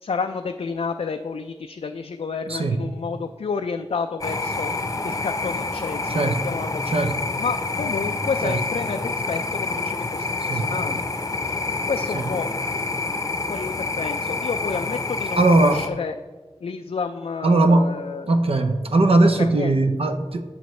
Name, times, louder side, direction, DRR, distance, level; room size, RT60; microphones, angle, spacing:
voice 1, 0.0-4.7 5.0-7.0 7.4-11.0 11.4-11.6 11.9-12.5 13.5-16.2 16.6-18.4 19.5-19.7, left 5 dB, 70° left, 6 dB, 0.4 m, -30 dB
sound 1, 4.2-15.9, left 3 dB, 30° left, 0.7 m, -27 dB
voice 2, 6.9-7.2 8.4-8.5 10.5-10.7 12.1-12.2 15.4-15.8 17.4-17.9 18.3-20.4, right 2 dB, 65° right, 7 dB, 0.6 m, -19 dB
11.0 x 7.0 x 3.2 m, 1.3 s
wide cardioid pair, 60°, 11 cm